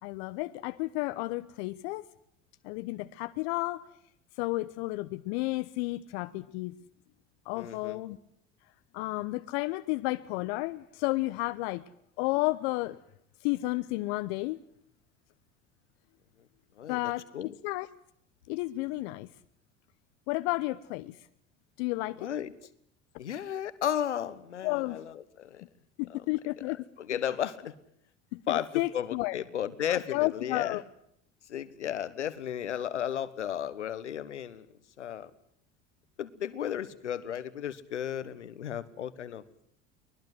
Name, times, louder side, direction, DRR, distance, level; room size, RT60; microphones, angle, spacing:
voice 1, 0.0-2.0 2.6-3.8 4.4-6.7 7.5-8.2 8.9-11.8 12.2-13.0 13.4-14.6 16.9-17.2 17.6-17.9 18.5-19.3 20.3-21.1 21.8-22.3 24.6-25.0 26.0-26.9 28.3-29.4 29.9-30.8, left 20 dB, 65° left, 13 dB, 1.0 m, -32 dB
voice 2, 7.6-8.0 16.8-17.5 22.2-22.5 23.2-25.6 26.1-26.2 27.0-27.7 28.5-28.7 28.9-30.8 31.5-34.7 35.0-35.3 36.2-39.4, left 9 dB, 85° left, 16 dB, 1.4 m, -34 dB
24.0 x 20.5 x 7.9 m, 0.71 s
hypercardioid pair, 70°, 34 cm